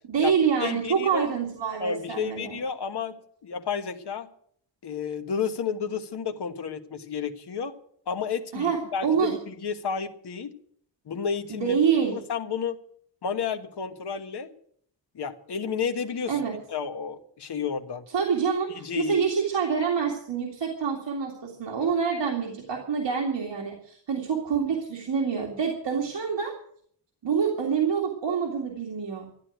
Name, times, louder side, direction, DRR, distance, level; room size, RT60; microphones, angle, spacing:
voice 1, 0.1-2.5 8.5-9.3 11.5-12.2 16.3-16.6 18.1-26.5 27.2-29.3, right 6 dB, 75° right, 0 dB, 2.4 m, -26 dB
voice 2, 0.6-1.3 1.8-3.2 3.4-4.3 4.8-7.7 8.1-10.5 11.1-11.8 12.1-12.8 13.2-14.5 15.1-16.4 16.7-18.1 18.7-19.2, left 6 dB, 60° left, 6 dB, 1.5 m, -31 dB
13.5 x 9.8 x 9.1 m, 0.63 s
wide cardioid pair, 160°, 44 cm